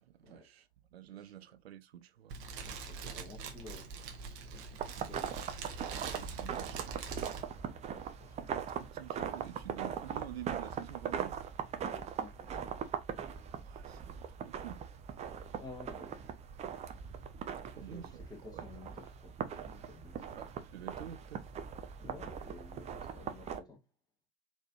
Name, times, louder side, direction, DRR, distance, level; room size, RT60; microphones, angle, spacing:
voice 1, 0.0-2.4 4.7-4.8 6.0-7.1 8.5-11.4 13.6-14.8 17.6-18.2 18.5-18.7 20.4-21.5, right 11 dB, 65° right, 0.5 m, -49 dB
Fire, 2.3-7.4, right 5 dB, 50° right, 1.0 m, -43 dB
voice 2, 2.6-5.3 6.3-6.4 7.6-9.0 11.8-12.8 15.6-16.2 17.6-20.5 22.0-23.9, left 3 dB, 10° left, 1.7 m, -53 dB
sound 1, 4.8-23.6, right 8 dB, 20° right, 0.6 m, -40 dB
4.1 x 3.2 x 2.6 m
figure-of-eight pair, 80°, 33 cm